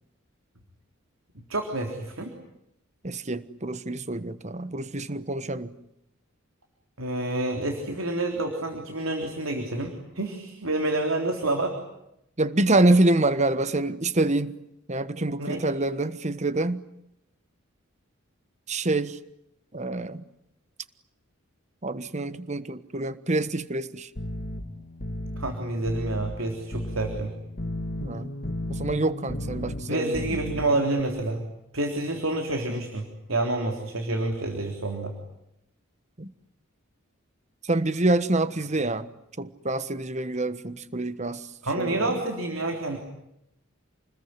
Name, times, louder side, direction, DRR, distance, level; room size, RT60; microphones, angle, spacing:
voice 1, 1.4-2.4 7.0-11.8 15.4-15.6 25.4-27.3 29.9-31.5 31.7-33.0 33.3-35.1 41.6-43.0, right 2 dB, 80° right, 3.6 m, -28 dB
voice 2, 3.0-5.7 12.4-14.5 14.9-16.8 18.7-19.2 19.7-20.2 21.8-24.1 28.0-28.3 28.7-30.2 36.2-36.3 37.6-39.1 39.4-41.5 41.8-42.1, right 2 dB, 35° right, 1.2 m, -26 dB
sound 1, 24.2-31.0, left 1 dB, 50° left, 2.1 m, -34 dB
29.0 x 21.0 x 9.8 m
head